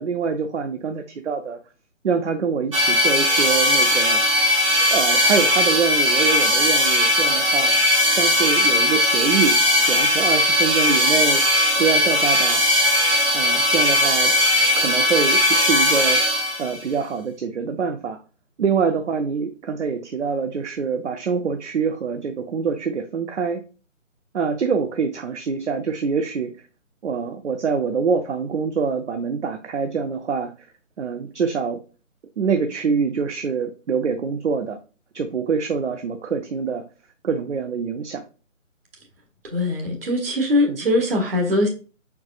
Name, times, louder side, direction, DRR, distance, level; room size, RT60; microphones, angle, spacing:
voice 1, 0.0-1.6 2.0-4.2 4.9-7.8 8.1-12.7 13.3-14.3 14.8-16.2 16.6-18.2 18.6-23.6 24.3-26.6 27.0-30.5 31.0-31.8 32.4-34.8 35.1-36.8 37.2-38.2 40.7-40.9, right 5 dB, 60° right, 7 dB, 0.6 m, -25 dB
sound 1, 2.7-16.8, left 1 dB, 25° right, 0.9 m, -18 dB
voice 2, 39.4-41.7, left 1 dB, 45° right, 2 dB, 1.4 m, -21 dB
4.9 x 4.7 x 2.3 m, 0.35 s
figure-of-eight pair, 165°, 40 cm